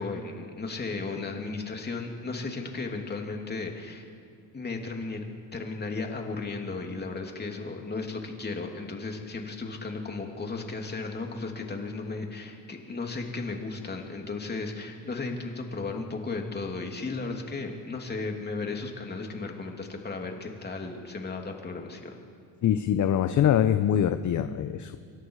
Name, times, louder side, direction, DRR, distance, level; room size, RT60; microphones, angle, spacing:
voice 1, 0.0-4.1 4.5-22.2, left 3 dB, 25° left, 2 dB, 3.0 m, -35 dB
voice 2, 22.6-25.0, left 10 dB, 45° left, 10 dB, 0.9 m, -24 dB
26.0 x 23.5 x 4.9 m, 2.3 s
cardioid pair, 105°, 42 cm